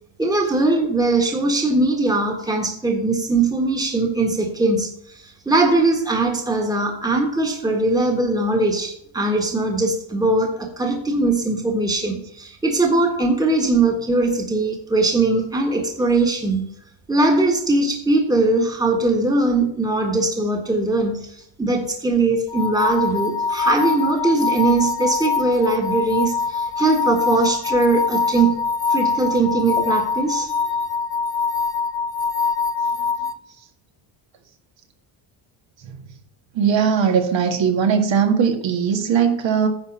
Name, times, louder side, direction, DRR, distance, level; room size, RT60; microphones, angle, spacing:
voice 1, 0.2-16.7 17.1-21.3 21.6-28.5 28.9-30.5, right 2 dB, 10° right, 1 dB, 1.6 m, -20 dB
sound 1, 22.5-33.3, left 5 dB, 10° left, 0.3 m, -23 dB
voice 2, 36.6-39.7, right 7 dB, 60° right, 4 dB, 1.9 m, -19 dB
10.0 x 4.3 x 7.4 m, 0.72 s
cardioid pair, 125°, 49 cm